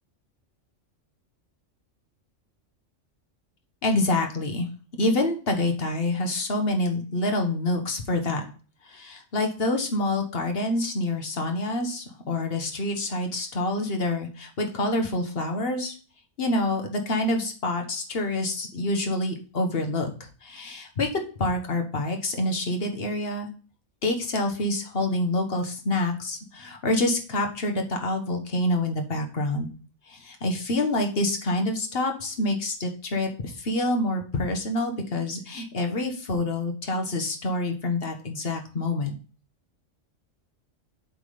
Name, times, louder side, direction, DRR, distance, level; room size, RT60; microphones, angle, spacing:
voice 1, 3.8-4.7 5.0-8.4 8.8-15.9 16.4-23.5 24.0-29.7 30.1-39.1, left 2 dB, 50° left, 4 dB, 1.4 m, -27 dB
7.7 x 3.7 x 4.9 m, 0.38 s
omnidirectional pair, 1.3 m